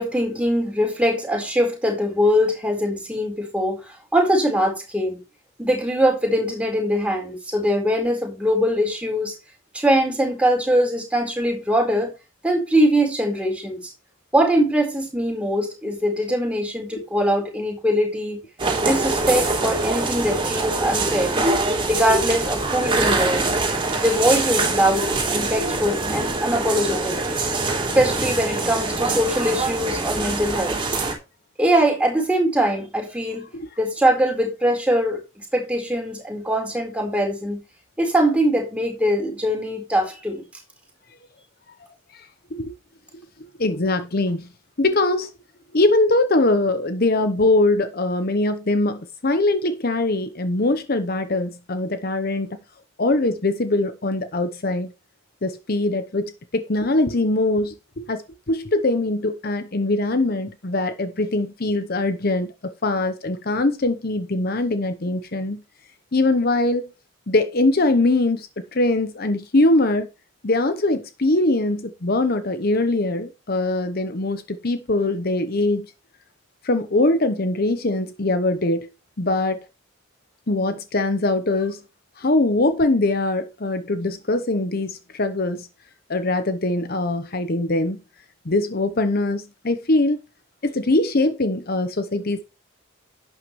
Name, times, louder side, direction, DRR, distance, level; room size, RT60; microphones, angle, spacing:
voice 1, 0.0-5.2 5.6-9.3 9.7-12.1 12.4-13.8 14.3-18.4 18.8-21.3 21.9-23.5 24.0-27.1 27.9-30.8 31.6-33.5 33.8-37.6 38.0-40.4, equal, 5° right, 4.3 m, -22 dB
sound 1, 18.6-31.1, right 3 dB, 25° right, 3.4 m, -24 dB
voice 2, 42.1-42.7 43.6-44.5 44.8-45.3 45.7-52.6 53.0-54.9 55.4-65.6 66.1-66.8 67.3-70.1 70.4-75.9 76.6-78.9 79.2-79.6 80.5-81.8 82.2-85.7 86.1-88.0 88.4-90.2 90.6-92.4, left 2 dB, 45° left, 0.9 m, -22 dB
11.5 x 9.0 x 3.2 m
head